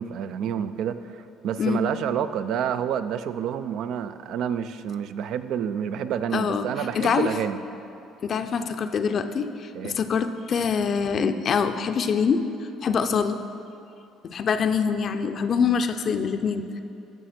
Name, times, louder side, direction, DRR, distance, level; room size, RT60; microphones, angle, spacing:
voice 1, 0.0-7.6 9.7-10.0, right 8 dB, 70° right, 11 dB, 0.4 m, -29 dB
voice 2, 6.3-7.3 8.2-12.4 12.8-13.4 14.2-16.6, left 6 dB, 50° left, 8 dB, 0.5 m, -24 dB
12.5 x 6.5 x 4.3 m, 2.8 s
supercardioid pair, 90°, 0 cm